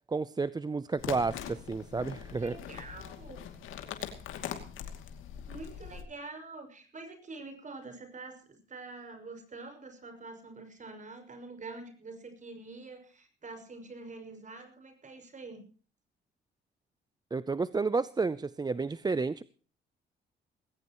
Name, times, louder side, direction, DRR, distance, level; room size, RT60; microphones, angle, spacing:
voice 1, 0.1-2.5 17.3-19.4, right 4 dB, 20° right, 0.6 m, -31 dB
sound 1, 1.0-6.0, left 9 dB, 85° left, 2.6 m, -42 dB
voice 2, 2.4-3.4 5.5-15.6, right 3 dB, 40° right, 6.1 m, -46 dB
20.0 x 16.5 x 3.1 m
cardioid pair, 90°, 20 cm